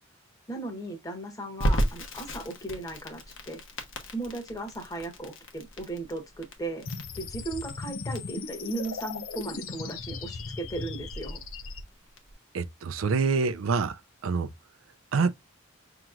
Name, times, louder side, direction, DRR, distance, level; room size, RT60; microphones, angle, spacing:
voice 1, 0.5-3.6 4.1-6.8 7.2-11.4, right 2 dB, 20° left, 1.1 m, -36 dB
Crackle, 1.6-12.3, equal, 70° left, 1.0 m, -35 dB
sound 1, 6.9-11.8, left 4 dB, 90° left, 0.6 m, -37 dB
voice 2, 12.5-14.5 15.1-15.3, right 4 dB, 80° right, 0.4 m, -26 dB
5.8 x 2.9 x 2.4 m
head